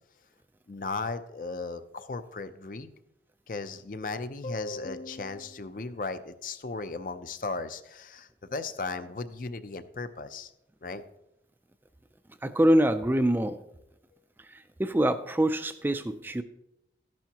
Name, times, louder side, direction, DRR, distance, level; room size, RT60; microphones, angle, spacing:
voice 1, 0.7-2.9 3.5-10.5 10.8-11.0, left 3 dB, 50° left, 10 dB, 0.5 m, -36 dB
voice 2, 12.4-13.6 14.5-16.4, right 1 dB, 10° right, 10 dB, 0.3 m, -25 dB
13.0 x 10.5 x 2.9 m, 0.86 s
head